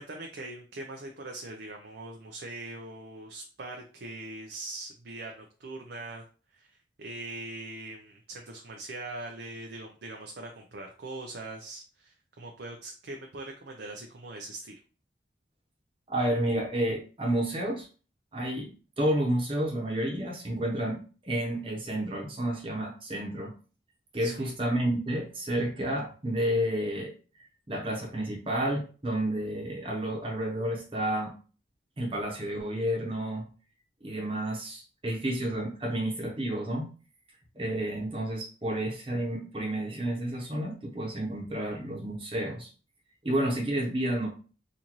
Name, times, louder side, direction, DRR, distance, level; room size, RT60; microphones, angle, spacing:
voice 1, 0.0-6.2 6.5-6.7 7.0-14.7 24.2-24.5, right 2 dB, 75° right, 1 dB, 0.5 m, -41 dB
voice 2, 16.1-17.9 18.3-18.7 19.0-23.5 24.1-27.1 27.7-31.3 32.0-33.5 34.0-36.9 37.5-42.7 43.2-44.3, right 1 dB, 30° right, -1 dB, 1.0 m, -30 dB
3.9 x 2.6 x 3.0 m, 0.37 s
head